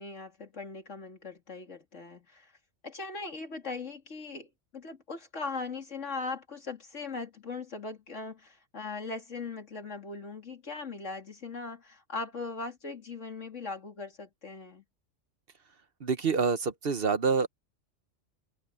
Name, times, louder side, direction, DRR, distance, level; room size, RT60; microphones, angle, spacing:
voice 1, 0.0-2.5 2.8-14.8, left 4 dB, 75° left, 3.0 m, -39 dB
voice 2, 16.0-17.5, right 5 dB, 50° right, 1.1 m, -27 dB
omnidirectional pair, 1.3 m